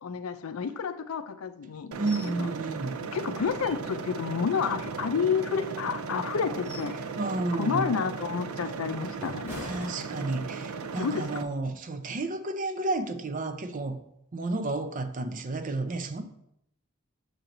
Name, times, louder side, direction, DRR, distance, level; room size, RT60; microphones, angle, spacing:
voice 1, 0.0-2.0 2.4-2.5 3.1-7.0 7.5-9.8 10.2-10.3 11.0-11.3, left 6 dB, 70° left, 0.4 m, -30 dB
voice 2, 1.9-3.0 7.2-7.9 9.6-14.0 14.3-16.2, right 2 dB, 40° right, 0.6 m, -31 dB
sound 1, 1.9-11.4, right 5 dB, 85° right, 0.5 m, -37 dB
sound 2, 2.0-2.4 2.7-2.8 3.3-4.1 4.6-5.6 6.2-7.0 7.4-7.7 8.2-10.7 11.0-11.3, left 1 dB, 10° right, 2.3 m, -46 dB
6.6 x 4.5 x 3.8 m
head